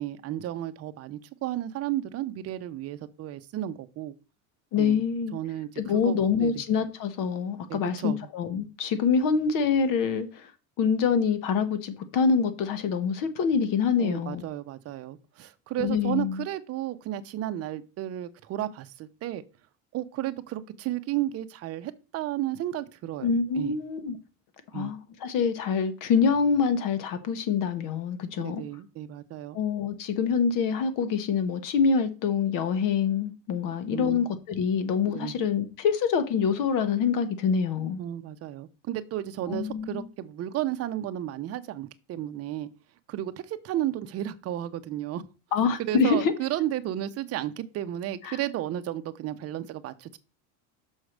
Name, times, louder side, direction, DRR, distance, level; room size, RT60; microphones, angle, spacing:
voice 1, 0.0-4.1 4.8-5.0 5.3-6.6 7.7-8.2 14.0-19.4 19.9-23.8 24.7-24.9 28.4-29.6 33.9-34.3 35.1-35.3 38.0-42.7 43.1-45.3 45.8-50.2, right 13 dB, 35° right, 0.7 m, -33 dB
voice 2, 4.7-5.3 5.8-10.5 10.8-14.4 15.8-16.4 23.2-24.2 24.7-28.6 29.5-38.0 39.5-40.1 45.5-46.3 48.2-48.4, left 6 dB, 50° left, 1.2 m, -26 dB
6.4 x 4.6 x 6.4 m
cardioid pair, 145°, 41 cm